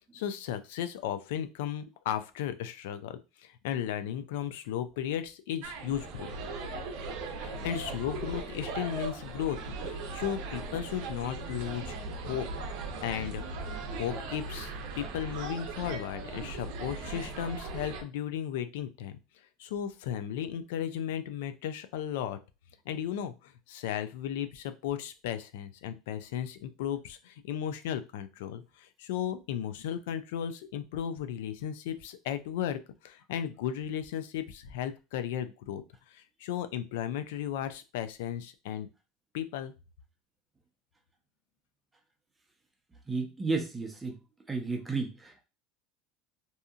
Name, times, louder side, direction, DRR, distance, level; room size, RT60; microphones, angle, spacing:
voice 1, 0.1-6.3 7.3-12.0 12.2-12.5 13.0-13.4 14.0-19.2 19.6-22.4 22.9-38.9 39.3-39.7, left 9 dB, 85° left, 11 dB, 0.3 m, -35 dB
sound 1, 5.6-18.0, right 3 dB, 70° right, 0.6 m, -38 dB
voice 2, 43.1-44.2 44.5-45.4, right 4 dB, 15° right, 2 dB, 0.6 m, -33 dB
2.7 x 2.5 x 2.4 m, 0.30 s
supercardioid pair, 115°, 0 cm